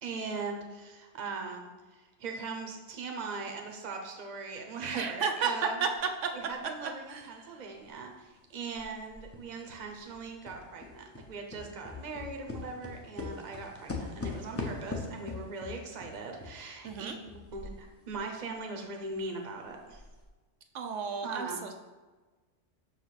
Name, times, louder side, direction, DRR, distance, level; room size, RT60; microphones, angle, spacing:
voice 1, 0.0-5.8 6.3-17.1 17.5-20.0 21.2-21.6, right 4 dB, 40° right, 3 dB, 0.8 m, -40 dB
voice 2, 4.9-5.5 5.8-5.9 7.1-7.3 16.8-17.1 20.7-21.7, right 6 dB, 80° right, 5 dB, 1.0 m, -32 dB
sound 1, 6.0-6.1 6.5-8.4 8.8-18.3 18.5-18.6 19.2-19.3 19.8-20.3, left 3 dB, 15° left, 0.7 m, -42 dB
6.0 x 4.9 x 4.0 m, 1.3 s
omnidirectional pair, 1.3 m